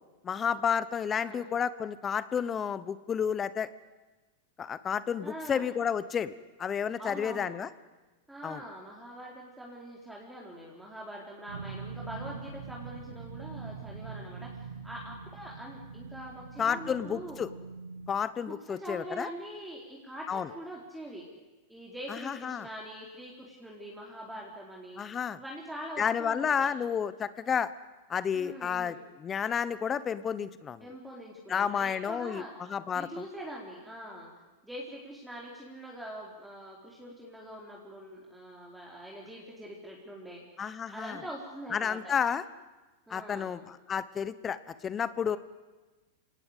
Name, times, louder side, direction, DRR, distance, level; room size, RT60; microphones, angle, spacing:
voice 1, 0.2-3.7 4.6-7.7 8.4-8.6 16.6-17.5 18.1-19.3 20.3-20.5 22.1-22.7 25.0-25.4 26.0-27.7 28.1-30.8 31.5-32.4 32.7-33.2 40.6-41.2 41.7-42.4 43.1-44.6 44.8-45.4, left 7 dB, 25° left, 16 dB, 1.0 m, -31 dB
voice 2, 1.1-1.5 5.2-5.7 7.0-7.6 8.3-17.5 18.4-21.2 21.7-25.0 25.4-26.7 28.3-29.0 30.8-32.5 32.9-34.3 34.6-40.4 40.9-42.2 43.1-43.6 45.3-45.4, equal, 5° right, -3 dB, 4.5 m, -44 dB
sound 1, 11.5-18.1, right 5 dB, 85° right, 2.4 m, -43 dB
26.5 x 18.5 x 8.4 m, 1.2 s
hypercardioid pair, 100°, 0 cm